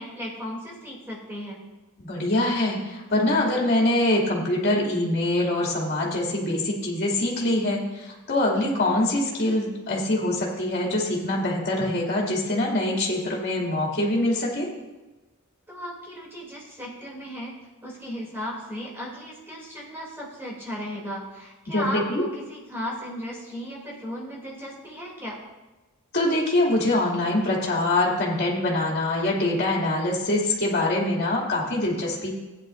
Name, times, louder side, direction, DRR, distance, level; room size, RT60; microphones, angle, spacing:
voice 1, 0.0-1.6 15.7-17.5 17.8-25.4, equal, 10° right, -4 dB, 2.7 m, -35 dB
voice 2, 2.0-14.7 21.7-22.2 26.1-32.3, left 1 dB, 50° left, -3 dB, 2.5 m, -24 dB
15.5 x 9.8 x 2.5 m, 1.1 s
head